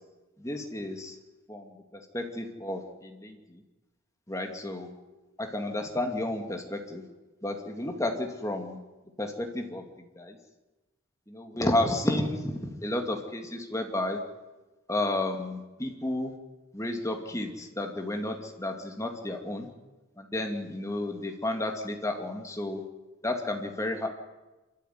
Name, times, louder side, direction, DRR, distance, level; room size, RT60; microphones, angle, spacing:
voice 1, 0.4-1.2 1.5-1.7 2.1-3.4 4.3-4.9 5.4-7.0 7.4-8.8 9.2-9.8 10.2-10.4 11.3-12.5 12.8-14.2 14.9-16.3 16.7-19.7 20.2-22.8 23.2-24.1, left 1 dB, 15° left, 4 dB, 2.4 m, -31 dB
26.5 x 14.0 x 9.5 m, 1.1 s
head